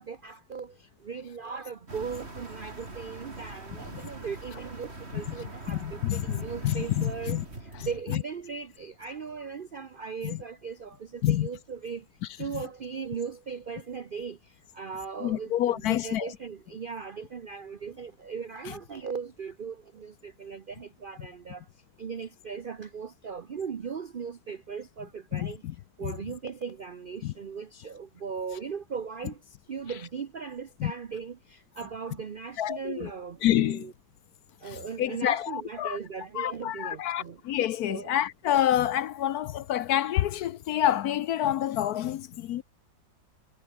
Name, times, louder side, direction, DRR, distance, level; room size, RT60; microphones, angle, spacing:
voice 1, 0.0-12.0 12.4-14.4 14.7-15.5 15.9-21.6 22.0-25.6 26.0-29.4 29.7-33.9 34.6-37.4 37.9-38.1, right 6 dB, 65° right, 0.5 m, -38 dB
sound 1, 1.9-8.0, right 2 dB, 35° right, 4.2 m, -42 dB
voice 2, 5.7-7.4 7.7-8.2 10.2-10.4 11.2-11.5 12.2-12.6 15.2-16.4 18.6-18.7 25.3-25.7 26.0-26.2 27.2-27.3 30.8-30.9 32.6-33.1 33.4-33.9 34.6-36.0 36.3-42.6, left 12 dB, 70° left, 1.0 m, -28 dB
omnidirectional pair, 1.9 m